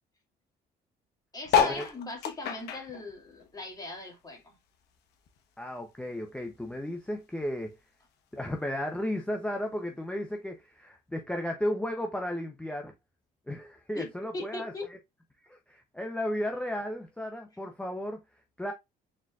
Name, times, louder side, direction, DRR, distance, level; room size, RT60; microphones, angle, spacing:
voice 1, 1.3-4.6 13.9-14.1 14.3-14.9, left 2 dB, 20° left, 2.0 m, -39 dB
sound 1, 1.5-4.2 4.6-6.1 6.6-6.7 6.8-6.9 7.1-7.5 8.3-8.4, left 7 dB, 80° left, 0.9 m, -30 dB
voice 2, 5.6-7.8 8.3-12.9 13.5-15.0 15.4-18.2 18.6-18.7, left 1 dB, 5° left, 0.6 m, -34 dB
4.4 x 3.9 x 2.3 m
cardioid pair, 110°, 17 cm